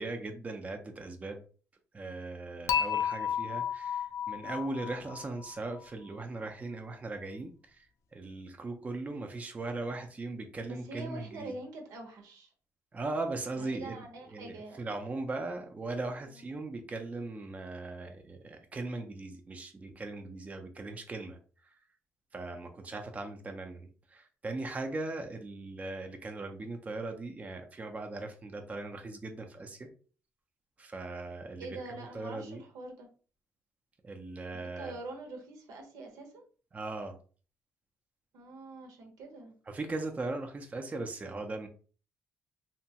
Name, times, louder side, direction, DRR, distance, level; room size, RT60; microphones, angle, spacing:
voice 1, 0.0-1.4 1.9-11.5 12.9-14.0 14.3-21.7 22.3-29.9 30.8-32.6 34.0-34.9 36.7-37.2 39.7-41.7, right 2 dB, 25° right, 4 dB, 0.5 m, -39 dB
Dishes pots and pans / Chink clink, 2.7-5.8, left 8 dB, 55° left, 0.3 m, -33 dB
voice 2, 10.6-12.5 13.6-14.9 16.2-16.4 31.6-33.1 34.8-36.4 38.3-39.6, right 2 dB, 90° right, 3 dB, 0.8 m, -44 dB
2.9 x 2.2 x 2.8 m, 0.39 s
cardioid pair, 100°, 6 cm